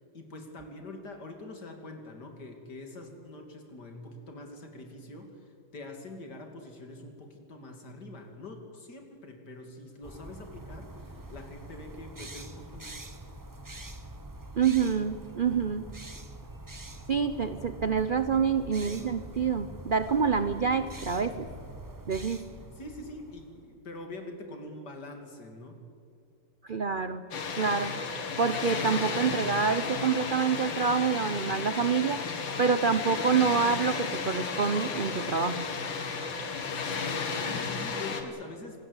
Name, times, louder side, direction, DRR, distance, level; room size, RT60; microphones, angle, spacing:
voice 1, 0.1-12.8 18.8-19.2 22.8-25.8 37.1-38.9, left 2 dB, 60° left, 5 dB, 3.3 m, -44 dB
sound 1, 10.0-23.7, right 1 dB, 15° right, 0.7 m, -45 dB
voice 2, 14.6-15.9 17.1-21.5 22.1-22.5 26.6-27.2 27.5-27.9 28.4-32.2 32.6-35.7, right 6 dB, 65° right, 11 dB, 0.5 m, -27 dB
Water, 27.3-38.2, left 5 dB, 85° left, 2.6 m, -33 dB
26.0 x 18.5 x 8.2 m, 2.5 s
omnidirectional pair, 2.1 m